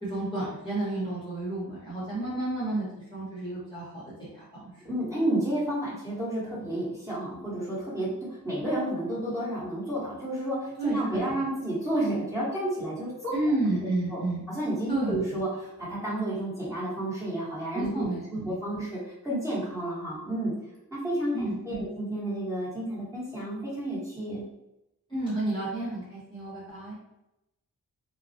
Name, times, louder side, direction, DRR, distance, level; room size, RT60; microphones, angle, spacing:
voice 1, 0.0-4.8 10.8-11.5 13.3-14.5 14.9-15.2 17.7-18.5 21.3-21.8 25.1-26.9, right 2 dB, 15° left, -9 dB, 0.9 m, -31 dB
voice 2, 4.8-13.4 13.7-13.8 14.1-14.2 14.5-20.5 20.9-24.4, right 1 dB, 10° right, -8 dB, 1.1 m, -31 dB
2.3 x 2.0 x 2.6 m, 0.89 s
cardioid pair, 65°, 37 cm